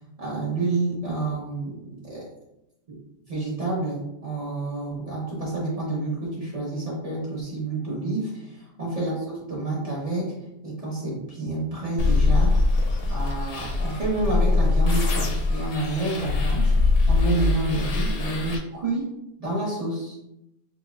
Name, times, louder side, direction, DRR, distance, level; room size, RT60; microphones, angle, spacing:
voice 1, 0.2-2.2 2.9-3.0 3.2-10.3 10.6-12.6 13.1-16.7 17.1-19.1 19.4-20.2, right 2 dB, 30° right, -6 dB, 1.0 m, -29 dB
sound 1, 12.0-18.6, left 3 dB, 60° left, 0.7 m, -22 dB
4.1 x 2.9 x 2.3 m, 0.86 s
omnidirectional pair, 1.3 m